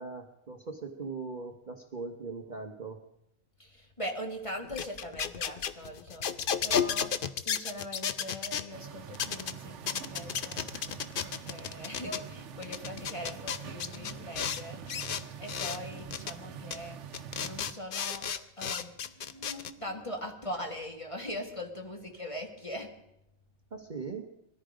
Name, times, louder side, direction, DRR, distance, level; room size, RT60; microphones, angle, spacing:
voice 1, 0.0-3.0 23.7-24.3, right 4 dB, 35° right, 4 dB, 1.0 m, -40 dB
voice 2, 3.6-6.3 6.6-7.1 7.4-10.7 11.2-14.8 15.4-17.0 17.4-18.3 18.6-18.9 19.8-22.9, equal, 25° left, 3 dB, 2.0 m, -41 dB
sound 1, 4.6-8.7 9.1-9.5 9.9-12.2 12.6-14.6 14.9-15.8 16.1-16.3 16.7-16.8 17.1-19.7, left 7 dB, 50° left, 0.7 m, -33 dB
sound 2, 8.7-17.7, right 7 dB, 60° right, 1.1 m, -45 dB
sound 3, 11.4-11.5 12.0-13.1 13.8-17.2 17.5-18.2 18.8-20.8, left 3 dB, 90° left, 4.7 m, -51 dB
20.5 x 14.0 x 5.0 m, 0.84 s
omnidirectional pair, 1.4 m